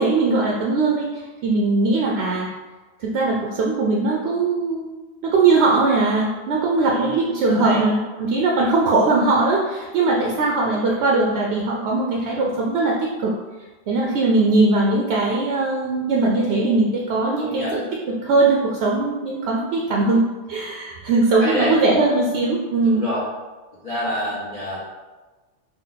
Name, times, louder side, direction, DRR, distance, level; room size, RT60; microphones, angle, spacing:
voice 1, 0.0-2.5 3.0-4.9 5.2-13.3 13.9-23.1, right 3 dB, 70° right, -2 dB, 0.8 m, -20 dB
voice 2, 6.8-7.8 17.4-17.7 21.4-21.7 22.8-23.2 23.8-24.8, left 1 dB, 35° left, -8 dB, 0.9 m, -27 dB
4.0 x 2.3 x 3.9 m, 1.2 s
omnidirectional pair, 1.2 m